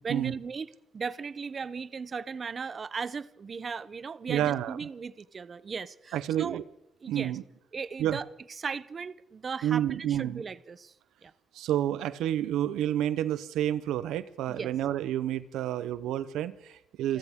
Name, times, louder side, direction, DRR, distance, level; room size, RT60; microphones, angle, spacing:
voice 1, 0.0-6.6 7.0-7.3 7.7-8.2 8.6-10.9 11.2-11.3 14.5-14.7 17.1-17.2, right 5 dB, 40° right, 0.6 m, -37 dB
voice 2, 4.3-4.9 6.1-6.6 7.1-7.4 8.0-8.2 9.6-10.4 11.5-17.2, right 11 dB, 85° right, 0.7 m, -29 dB
27.5 x 14.5 x 3.6 m
cardioid pair, 90°, 0 cm